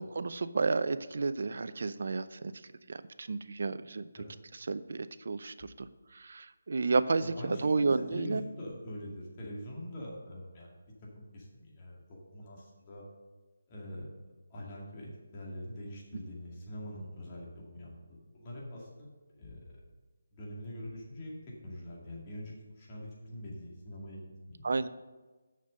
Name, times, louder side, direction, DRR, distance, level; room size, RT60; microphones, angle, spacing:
voice 1, 0.0-2.5 2.9-4.1 4.7-5.9 6.1-8.4 24.6-24.9, right 4 dB, 60° right, 13 dB, 0.5 m, -31 dB
voice 2, 7.2-10.7 11.2-12.0 12.3-13.0 13.7-14.1 14.5-17.9 18.2-19.1 19.4-19.8 20.3-24.7, left 1 dB, 25° left, -4 dB, 2.2 m, -44 dB
6.7 x 6.6 x 6.4 m, 1.3 s
figure-of-eight pair, 165°, 0 cm